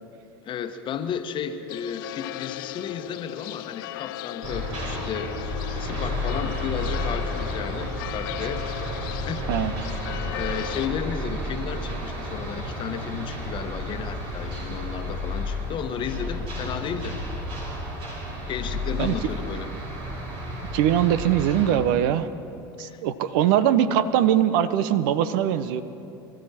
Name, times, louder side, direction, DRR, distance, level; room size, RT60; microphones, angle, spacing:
voice 1, 0.4-8.7 9.3-9.5 10.4-17.2 18.5-19.7 22.8-23.0, left 8 dB, 45° left, 8 dB, 1.1 m, -33 dB
sound 1, 1.7-10.9, left 16 dB, 75° left, 0.4 m, -36 dB
sound 2, 4.4-21.7, left 1 dB, 55° right, 5.0 m, -32 dB
voice 2, 20.7-22.3 22.8-25.8, right 10 dB, 70° right, 14 dB, 0.7 m, -22 dB
23.5 x 13.5 x 4.3 m, 2.8 s
hypercardioid pair, 80°, 11 cm